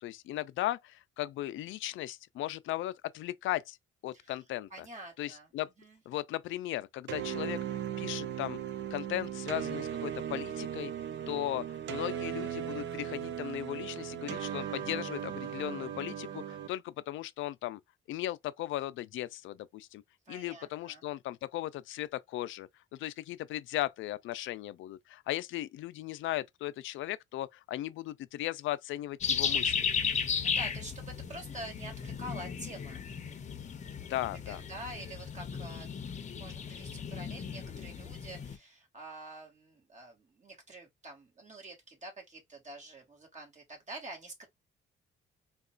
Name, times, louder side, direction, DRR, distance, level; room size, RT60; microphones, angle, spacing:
voice 1, 0.0-3.8 4.0-4.9 5.2-5.7 6.1-8.6 8.9-10.9 11.3-17.8 18.1-20.0 20.3-29.8 34.0-34.6, left 14 dB, 80° left, 0.4 m, -37 dB
voice 2, 4.7-5.5 5.8-6.0 14.7-15.2 20.2-21.0 30.2-33.0 34.3-44.5, right 1 dB, 40° right, 1.8 m, -47 dB
sound 1, 7.1-16.7, right 9 dB, 65° right, 0.5 m, -37 dB
sound 2, 29.2-38.6, left 6 dB, 35° left, 0.7 m, -35 dB
3.7 x 2.4 x 2.3 m
cardioid pair, 90°, 20 cm